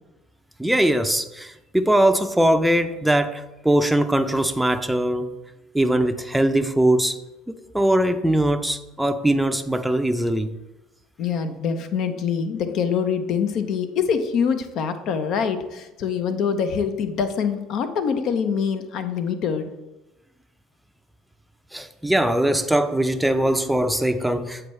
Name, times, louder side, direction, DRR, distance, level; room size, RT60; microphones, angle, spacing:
voice 1, 0.6-5.3 5.7-7.2 7.5-10.5 21.7-24.7, right 1 dB, 5° right, 0.5 m, -21 dB
voice 2, 11.2-19.7, left 6 dB, 60° left, 0.7 m, -24 dB
7.7 x 4.5 x 3.2 m
hypercardioid pair, 80°, 0 cm